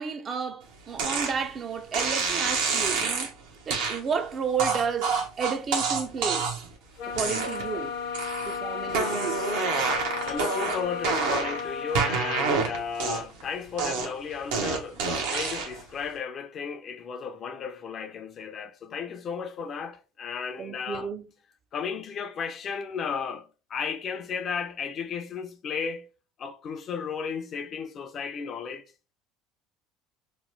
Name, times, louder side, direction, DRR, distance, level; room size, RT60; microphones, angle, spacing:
voice 1, 0.0-3.4 3.7-6.5 7.1-7.9 8.5-9.5 20.6-21.2, right 6 dB, 40° right, 0.4 m, -32 dB
sound 1, 1.0-1.3 1.9-3.3 3.7-4.0 4.6-6.7 7.1-7.8 8.1-8.6 8.9-11.6 11.9-13.4 13.8-15.8, right 4 dB, 85° right, 0.8 m, -27 dB
sound 2, 7.0-12.5, left 6 dB, 75° left, 0.8 m, -34 dB
voice 2, 9.9-21.1 21.7-26.1 26.4-28.8, left 6 dB, 45° left, 0.4 m, -34 dB
3.0 x 2.1 x 3.1 m
supercardioid pair, 95°, 0 cm